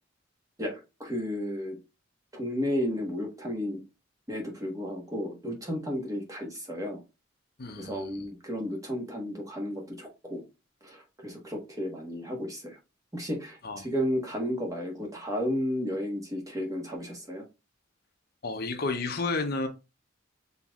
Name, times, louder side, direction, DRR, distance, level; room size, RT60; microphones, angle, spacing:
voice 1, 0.6-1.8 2.3-3.8 4.3-7.0 7.8-10.4 10.8-12.8 13.1-17.4, equal, 15° right, 1.3 m, -33 dB
voice 2, 7.6-8.3 13.6-13.9 18.4-19.7, left 3 dB, 50° left, 0.7 m, -31 dB
5.6 x 4.0 x 2.4 m
head